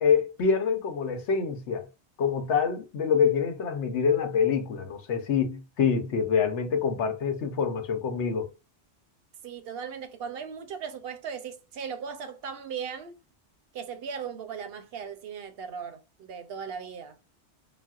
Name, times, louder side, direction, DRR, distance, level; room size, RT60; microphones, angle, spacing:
voice 1, 0.0-1.9 2.2-8.5, left 6 dB, 85° left, 1.0 m, -26 dB
voice 2, 9.4-13.1 13.7-17.2, right 7 dB, 65° right, 0.7 m, -38 dB
4.0 x 2.0 x 2.3 m
omnidirectional pair, 1.1 m